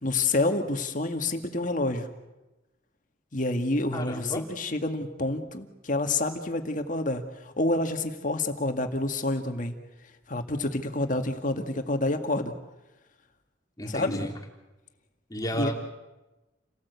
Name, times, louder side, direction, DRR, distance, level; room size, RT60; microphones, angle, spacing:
voice 1, 0.0-2.1 3.3-9.7 10.3-12.5 13.9-14.3 15.5-15.7, left 2 dB, 40° left, 6 dB, 1.9 m, -28 dB
voice 2, 3.9-4.4 13.8-14.3 15.3-15.7, equal, 20° left, 2 dB, 2.9 m, -32 dB
29.0 x 18.5 x 8.3 m, 1.1 s
head